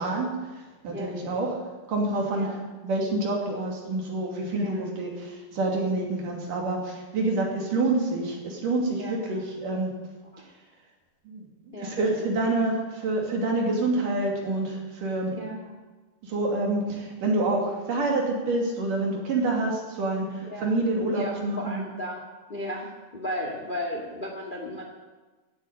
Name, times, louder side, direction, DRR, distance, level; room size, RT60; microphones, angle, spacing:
voice 1, 0.0-1.6 1.9-2.6 2.8-9.9 11.3-15.3 16.2-21.8, right 2 dB, 55° right, -1 dB, 4.0 m, -27 dB
voice 2, 9.0-9.4 10.3-10.4 11.7-12.3 15.3-15.7 20.5-20.7 21.1-22.2 22.5-24.8, left 1 dB, 25° left, 1 dB, 1.0 m, -35 dB
16.0 x 8.7 x 8.3 m, 1.2 s
omnidirectional pair, 4.6 m